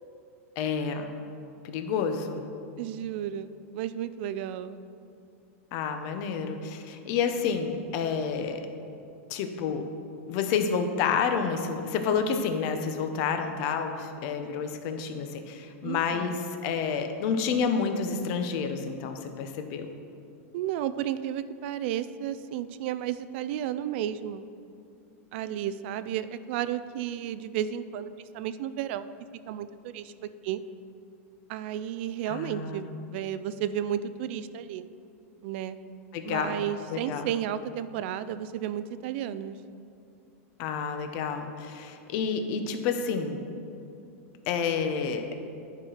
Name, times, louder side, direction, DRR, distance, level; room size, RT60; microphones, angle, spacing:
voice 1, 0.6-1.1 1.6-2.4 5.7-8.6 9.3-9.8 10.3-19.9 32.3-33.0 36.1-36.6 36.9-37.3 40.6-43.4 44.5-45.3, left 6 dB, 45° left, 7 dB, 0.8 m, -29 dB
voice 2, 2.8-4.8 15.8-16.4 20.5-24.4 25.3-29.1 29.5-30.1 30.4-30.6 31.5-34.8 35.4-35.8 36.2-39.6, right 10 dB, 50° right, 13 dB, 0.4 m, -33 dB
10.5 x 5.0 x 5.7 m, 2.6 s
supercardioid pair, 150°, 8 cm